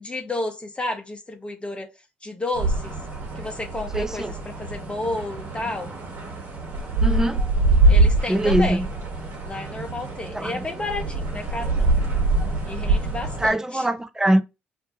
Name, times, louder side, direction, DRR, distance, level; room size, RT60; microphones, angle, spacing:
voice 1, 0.0-1.9 2.2-2.9 3.3-4.2 4.6-5.9 7.9-8.8 9.4-11.9 12.7-13.8, left 2 dB, 20° left, 0.8 m, -31 dB
sound 1, 2.6-13.5, right 2 dB, 60° right, 1.2 m, -24 dB
voice 2, 3.9-4.3 7.0-7.4 8.3-8.9 10.3-10.6 13.4-14.4, right 1 dB, 10° right, 0.5 m, -22 dB
2.6 x 2.2 x 4.0 m
figure-of-eight pair, 40°, 5 cm